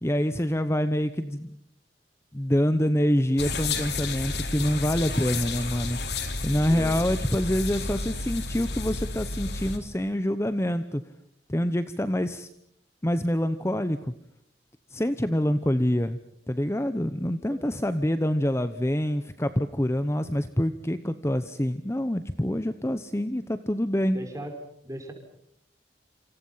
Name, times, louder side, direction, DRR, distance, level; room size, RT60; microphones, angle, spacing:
voice 1, 0.0-1.6 2.3-6.0 6.4-11.0 11.5-12.5 13.0-14.1 14.9-16.2 16.5-24.2, equal, 15° left, 11 dB, 0.9 m, -26 dB
sound 1, 3.4-9.8, left 3 dB, 70° left, 3.6 m, -31 dB
voice 2, 24.1-24.5 24.8-25.1, equal, 20° right, 4 dB, 5.3 m, -37 dB
28.0 x 27.0 x 5.7 m, 0.73 s
head